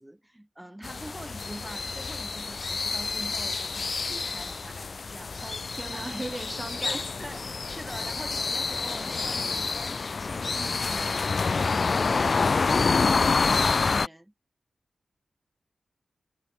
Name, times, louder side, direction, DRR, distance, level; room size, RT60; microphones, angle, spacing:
voice 1, 0.0-5.6 5.9-6.2 6.8-14.3, right 1 dB, 10° right, 7.4 m, -44 dB
sound 1, 0.8-14.1, left 4 dB, 60° left, 0.5 m, -28 dB
voice 2, 5.4-7.1, right 2 dB, 30° right, 4.2 m, -37 dB
cardioid pair, 55°, 0 cm